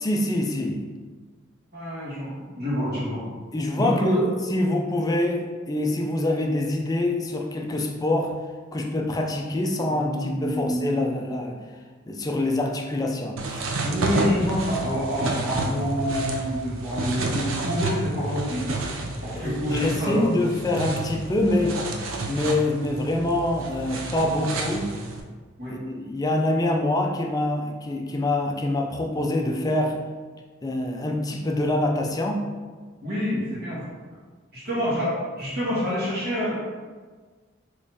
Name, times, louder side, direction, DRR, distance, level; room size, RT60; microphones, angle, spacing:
voice 1, 0.0-0.8 3.5-4.2 4.5-8.3 8.7-11.6 12.1-13.6 19.3-21.8 22.3-24.9 25.7-30.0 30.6-32.5 34.8-34.9, left 1 dB, 20° left, 2 dB, 0.3 m, -25 dB
voice 2, 1.7-3.2 3.8-4.2 9.8-10.9 13.8-18.7 19.2-20.3 25.6-25.7 33.0-33.8 34.5-36.5, equal, 55° right, -9 dB, 1.4 m, -27 dB
sound 1, 13.4-25.2, right 2 dB, 80° right, 0.5 m, -30 dB
3.6 x 3.1 x 2.7 m, 1.4 s
head